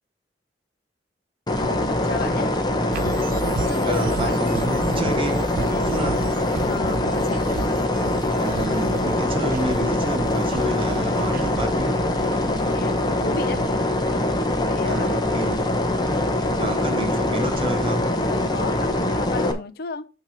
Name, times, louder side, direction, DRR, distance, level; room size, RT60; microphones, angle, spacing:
sound 1, 1.5-19.5, left 1 dB, 25° left, 0.9 m, -23 dB
voice 1, 1.6-2.5 3.6-4.4 6.7-7.4 12.4-13.7 14.7-15.1 18.5-20.1, left 4 dB, 60° left, 0.6 m, -33 dB
sound 2, 2.9-13.8, right 5 dB, 55° right, 0.3 m, -35 dB
voice 2, 3.9-6.3 8.4-12.1 14.8-15.7 16.6-18.1, right 1 dB, 30° right, 0.9 m, -30 dB
8.9 x 3.0 x 5.7 m
head